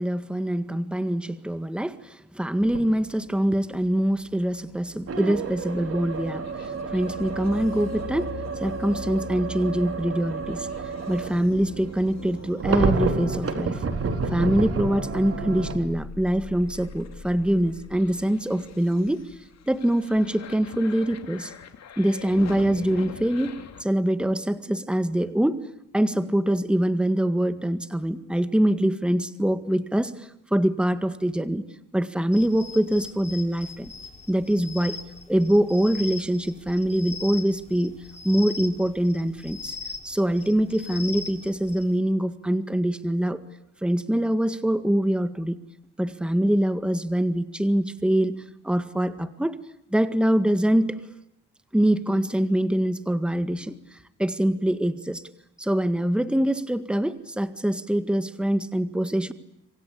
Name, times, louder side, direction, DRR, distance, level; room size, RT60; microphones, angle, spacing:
voice 1, 0.0-10.7 11.1-13.8 14.3-19.2 19.7-21.5 22.0-23.5 23.8-25.6 25.9-31.6 31.9-33.9 34.3-35.0 35.3-37.9 38.2-39.8 40.0-43.4 43.8-45.6 46.0-48.4 48.6-49.6 49.9-51.0 51.7-55.2 55.6-59.3, right 1 dB, 5° right, 11 dB, 1.8 m, -24 dB
sound 1, 2.6-2.9 5.1-15.8, right 4 dB, 50° right, 4.0 m, -30 dB
sound 2, 5.5-23.8, left 7 dB, 60° left, 2.9 m, -43 dB
sound 3, 32.3-42.0, left 4 dB, 20° left, 5.8 m, -40 dB
27.0 x 26.0 x 8.5 m, 0.84 s
cardioid pair, 90°, 30 cm